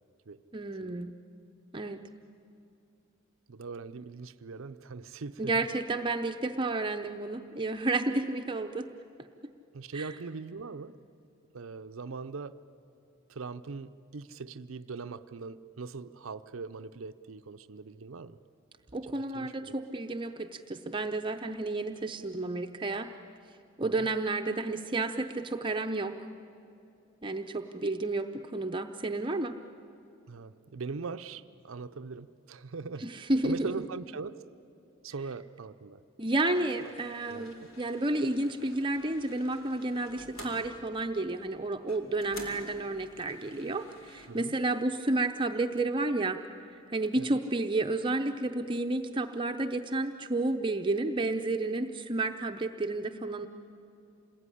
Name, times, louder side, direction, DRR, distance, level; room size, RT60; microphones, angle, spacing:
voice 1, 0.5-1.1 1.7-2.0 5.4-8.9 9.9-10.1 18.9-23.1 23.8-26.2 27.2-29.5 33.0-33.7 36.2-46.4 46.9-53.5, right 2 dB, 25° right, 5 dB, 0.7 m, -31 dB
voice 2, 3.5-5.7 9.7-11.0 11.5-12.6 13.3-18.4 19.1-19.7 23.8-24.1 30.3-33.0 33.4-34.4 35.0-36.0 36.8-36.9 37.3-37.5 44.3-44.6 47.2-47.4, right 4 dB, 85° right, 10 dB, 0.6 m, -41 dB
sound 1, 36.4-44.3, left 1 dB, 85° left, 4.3 m, -50 dB
28.0 x 20.5 x 10.0 m, 2.8 s
head